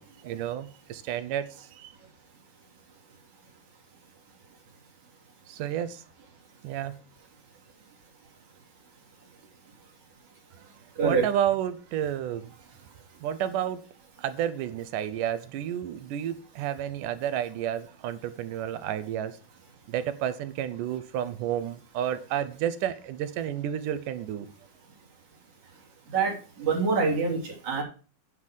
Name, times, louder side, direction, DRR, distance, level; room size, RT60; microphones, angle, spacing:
voice 1, 0.0-1.9 5.5-6.0 6.6-6.9 11.0-12.5 13.2-13.8 14.2-19.4 19.9-24.5, right 10 dB, 75° right, 2.1 m, -31 dB
voice 2, 26.1-27.8, right 4 dB, 55° right, 4.2 m, -25 dB
9.8 x 5.5 x 6.2 m
omnidirectional pair, 4.1 m